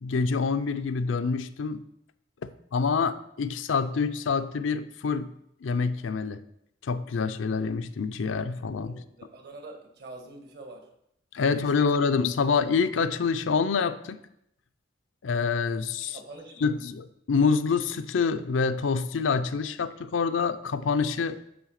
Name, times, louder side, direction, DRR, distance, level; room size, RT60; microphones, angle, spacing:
voice 1, 0.0-1.8 2.4-5.3 5.6-6.4 6.8-9.0 11.3-14.2 15.2-16.2 16.6-21.4, left 5 dB, 85° left, 11 dB, 0.5 m, -26 dB
voice 2, 8.8-10.9 11.5-12.0 16.0-16.7, right 2 dB, 60° right, 4 dB, 1.4 m, -46 dB
8.8 x 3.2 x 6.5 m, 0.76 s
head